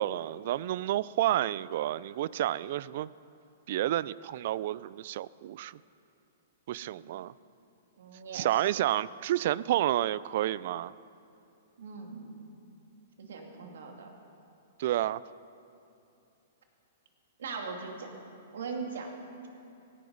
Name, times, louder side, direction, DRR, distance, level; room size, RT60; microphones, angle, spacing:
voice 1, 0.0-3.1 3.7-5.7 6.7-7.3 8.3-10.9 14.8-15.2, right 13 dB, 55° right, 20 dB, 0.3 m, -30 dB
voice 2, 8.0-8.7 11.8-12.5 13.2-14.1 17.4-18.1 18.5-19.5, right 4 dB, 80° right, 2 dB, 2.5 m, -40 dB
17.5 x 15.0 x 4.0 m, 2.7 s
hypercardioid pair, 135°, 0 cm